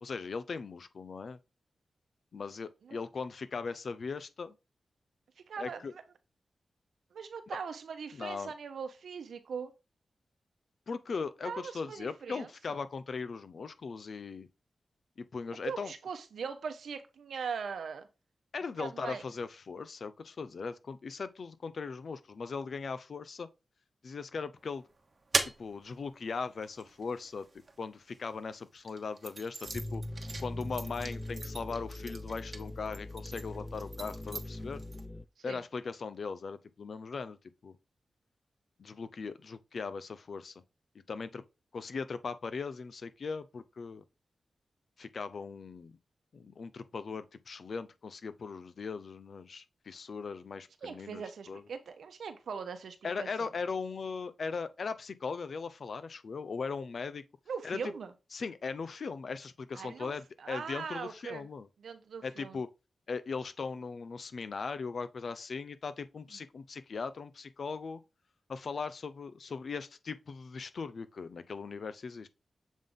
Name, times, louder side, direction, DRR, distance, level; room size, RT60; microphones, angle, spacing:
voice 1, 0.0-1.4 2.3-4.5 5.6-5.9 8.1-8.5 10.9-14.5 15.2-15.9 18.5-23.5 24.0-24.8 25.6-27.5 27.8-30.0 30.4-34.8 35.4-37.4 37.6-37.8 38.8-40.5 41.1-41.4 41.7-44.0 45.0-46.0 46.3-51.6 53.0-57.2 57.6-57.9 58.3-61.7 62.2-62.7 63.1-68.0 68.5-72.3, left 5 dB, 65° left, 0.6 m, -39 dB
voice 2, 5.5-6.0 7.1-9.7 11.4-12.8 15.6-18.1 18.8-19.2 35.4-35.6 50.8-53.5 57.5-58.1 59.7-60.1 60.4-61.5 61.8-62.6 66.3-66.4, right 6 dB, 90° right, 0.9 m, -41 dB
sound 1, 24.6-28.2 28.8-35.0, right 3 dB, 45° right, 1.1 m, -40 dB
sound 2, 29.7-35.2, left 1 dB, 10° left, 0.4 m, -41 dB
7.3 x 3.6 x 3.8 m
cardioid pair, 75°, 0 cm